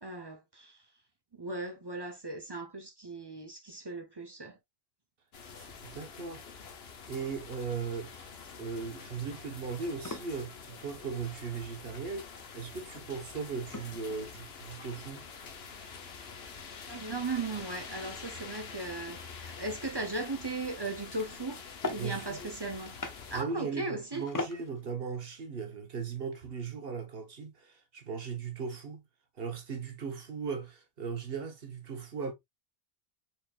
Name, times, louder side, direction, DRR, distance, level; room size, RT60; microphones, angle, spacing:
voice 1, 0.0-0.8 1.3-4.6 16.9-21.6 21.9-23.0 23.3-24.3, right 3 dB, 30° right, 0.6 m, -37 dB
sound 1, 5.3-23.4, left 5 dB, 75° left, 1.1 m, -47 dB
voice 2, 5.6-6.4 7.1-8.3 8.6-15.3 21.9-22.4 23.3-29.1 29.4-32.3, right 5 dB, 65° right, 1.3 m, -38 dB
sound 2, 20.0-24.9, left 2 dB, 25° left, 0.5 m, -46 dB
4.4 x 4.2 x 2.3 m
omnidirectional pair, 1.1 m